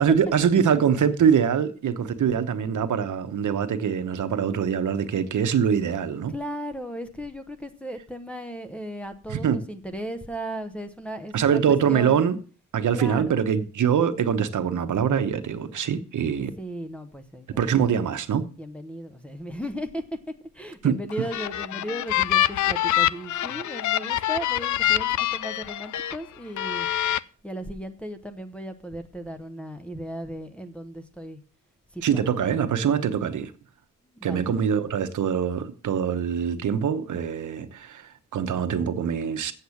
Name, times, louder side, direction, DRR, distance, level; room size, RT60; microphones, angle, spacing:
voice 1, 0.0-6.3 9.3-9.6 11.3-12.4 12.7-16.5 17.6-18.4 20.8-21.0 32.0-33.5 34.2-39.5, right 7 dB, 70° right, 1.0 m, -23 dB
voice 2, 6.3-12.2 12.9-13.4 16.6-17.7 18.6-20.0 20.5-26.9 27.4-31.4 31.9-32.3 34.1-34.5, equal, 5° left, 0.9 m, -36 dB
sound 1, 21.1-26.2 26.6-27.2, left 12 dB, 65° left, 0.5 m, -25 dB
8.0 x 7.6 x 7.1 m
wide cardioid pair, 175°, 32 cm